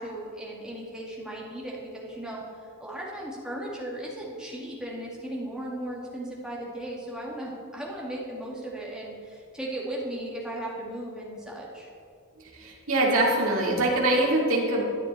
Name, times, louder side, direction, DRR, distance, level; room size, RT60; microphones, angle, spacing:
voice 1, 0.0-11.9, right 1 dB, 5° right, -4 dB, 2.3 m, -36 dB
voice 2, 12.6-14.8, right 1 dB, 65° right, -3 dB, 2.8 m, -23 dB
14.0 x 9.8 x 4.4 m, 2.3 s
head